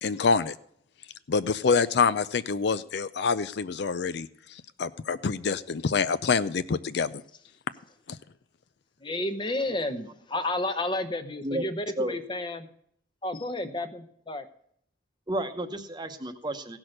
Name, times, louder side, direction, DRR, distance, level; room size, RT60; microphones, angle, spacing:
voice 1, 0.0-0.5 1.3-7.2 8.1-8.2, left 5 dB, 60° left, 14 dB, 0.4 m, -26 dB
voice 2, 9.0-12.7 13.2-14.5, left 1 dB, 25° left, 9 dB, 0.8 m, -31 dB
voice 3, 15.3-16.8, right 1 dB, 20° right, 7 dB, 0.9 m, -32 dB
16.0 x 6.1 x 6.4 m, 0.67 s
head